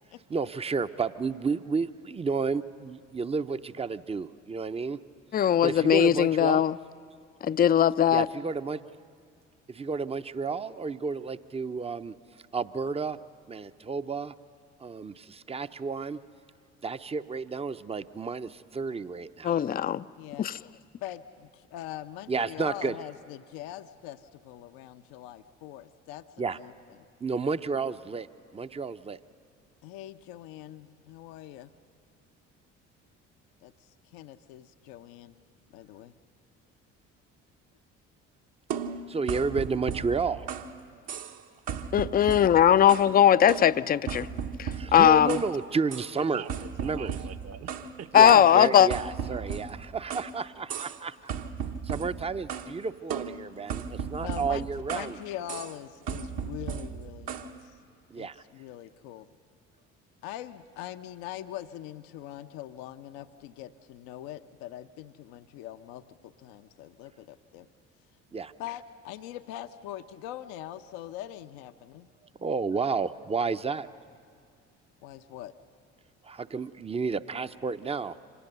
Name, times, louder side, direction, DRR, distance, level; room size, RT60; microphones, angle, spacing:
voice 1, 0.3-5.0 5.6-6.6 8.1-8.8 9.7-12.1 12.5-13.2 13.5-14.3 14.8-16.2 16.8-19.6 22.3-23.0 26.4-26.6 27.2-28.3 28.5-29.2 39.1-40.5 44.7-46.4 46.8-47.1 48.1-51.2 51.8-55.2 58.1-58.4 68.3-68.5 72.4-73.9 76.2-78.2, right 4 dB, 15° right, 12 dB, 0.6 m, -31 dB
voice 2, 5.3-6.8 7.4-8.3 19.4-20.0 20.4-20.6 41.9-44.3 44.6-45.4 48.1-48.9, left 10 dB, 25° left, 17 dB, 0.4 m, -20 dB
voice 3, 20.2-20.7 21.0-27.0 29.8-31.7 33.6-35.4 35.7-36.1 48.3-48.6 54.1-57.8 58.1-59.3 60.2-67.7 68.6-72.1 75.0-75.5, left 12 dB, 70° left, 9 dB, 0.7 m, -42 dB
sound 1, 38.7-40.8 41.1-41.4 41.7-43.2 43.5-45.5 45.9-46.1 46.5-47.9 48.3-50.3 50.7-51.0 51.3-52.7 53.1-55.2 55.5-55.8 56.1-57.5, right 7 dB, 60° right, 1.2 m, -36 dB
voice 4, 46.2-48.8, right 8 dB, 40° right, 12 dB, 1.0 m, -44 dB
25.5 x 18.0 x 6.8 m, 2.3 s
hypercardioid pair, 55°, 37 cm